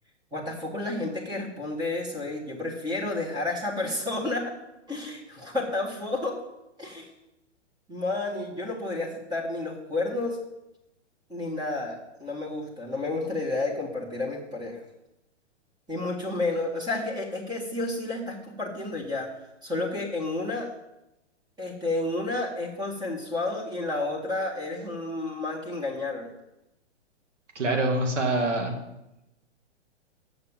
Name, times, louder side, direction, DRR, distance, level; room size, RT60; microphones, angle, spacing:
voice 1, 0.3-4.6 4.9-6.4 6.8-7.1 7.9-10.4 11.3-14.8 15.9-20.7 21.6-26.3, left 2 dB, 10° right, -2 dB, 1.8 m, -31 dB
voice 2, 27.6-28.8, right 2 dB, 85° right, 3 dB, 2.2 m, -25 dB
7.0 x 6.3 x 7.4 m, 0.92 s
hypercardioid pair, 130°, 36 cm